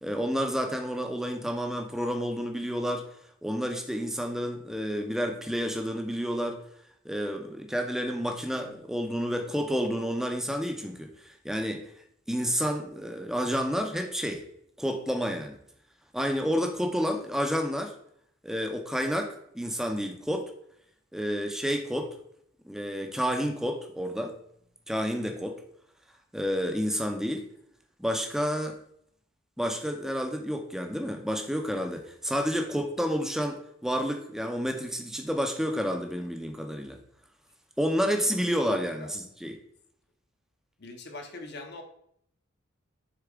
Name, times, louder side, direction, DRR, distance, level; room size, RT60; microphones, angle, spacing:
voice 1, 0.0-3.1 3.4-6.6 7.0-11.8 12.3-14.4 14.8-15.6 16.1-17.9 18.4-20.4 21.1-22.2 22.7-24.4 24.9-25.6 26.3-27.4 28.0-28.8 29.6-37.0 37.8-39.6, equal, ahead, 5 dB, 0.6 m, -30 dB
voice 2, 40.8-41.8, left 2 dB, 55° left, 4 dB, 0.9 m, -42 dB
6.7 x 4.1 x 3.6 m, 0.69 s
head